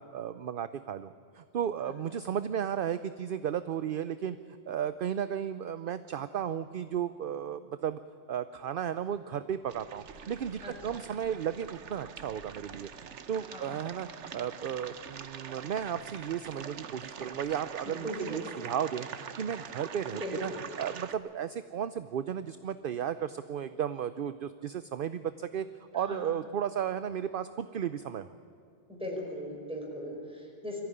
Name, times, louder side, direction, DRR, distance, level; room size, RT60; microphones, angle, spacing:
voice 1, 0.0-4.4 4.7-8.0 8.3-12.9 13.3-19.1 19.4-20.5 20.8-25.7 25.9-28.4, right 9 dB, 55° right, 12 dB, 0.8 m, -34 dB
swamp-out time, 9.7-21.1, right 7 dB, 85° right, 1.3 m, -44 dB
voice 2, 10.6-11.1 13.5-14.0 18.0-18.4 20.2-20.6 26.1-26.2 28.9-30.8, equal, 5° right, -1 dB, 5.2 m, -39 dB
23.0 x 15.0 x 10.0 m, 2.6 s
omnidirectional pair, 1.2 m